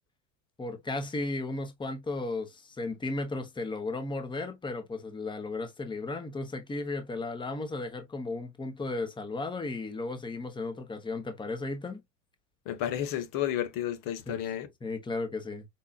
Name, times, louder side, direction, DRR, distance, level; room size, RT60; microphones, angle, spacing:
voice 1, 0.6-12.0 14.3-14.4 14.8-15.6, left 2 dB, 15° left, 0.9 m, -35 dB
voice 2, 12.7-14.7, left 11 dB, 60° left, 0.9 m, -31 dB
5.5 x 2.3 x 2.3 m
supercardioid pair, 95°, 37 cm